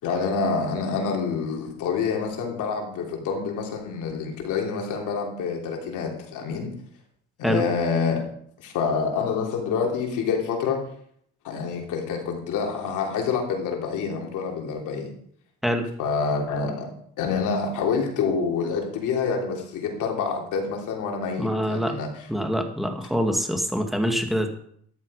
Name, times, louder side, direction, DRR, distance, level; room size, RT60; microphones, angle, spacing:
voice 1, 0.0-6.8 7.4-8.2 8.6-10.8 11.4-15.1 16.0-22.3, left 5 dB, 90° left, 1 dB, 3.3 m, -27 dB
voice 2, 21.4-21.9 22.3-24.5, equal, ahead, 4 dB, 2.5 m, -25 dB
13.5 x 11.0 x 5.1 m, 0.66 s
cardioid pair, 90°, 30 cm